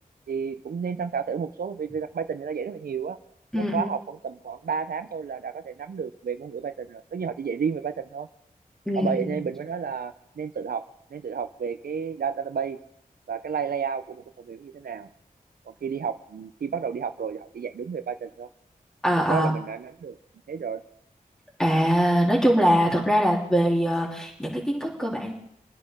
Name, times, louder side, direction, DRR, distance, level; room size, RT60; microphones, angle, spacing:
voice 1, 0.3-3.2 3.6-8.3 9.0-10.9 11.1-12.8 13.3-15.1 15.7-18.5 19.3-20.2 20.5-20.8, right 6 dB, 85° right, 11 dB, 0.6 m, -31 dB
voice 2, 3.5-3.9 8.9-9.4 19.0-19.5 21.6-25.3, equal, 5° left, -2 dB, 3.1 m, -22 dB
25.5 x 9.8 x 3.7 m, 0.74 s
cardioid pair, 50°, 15 cm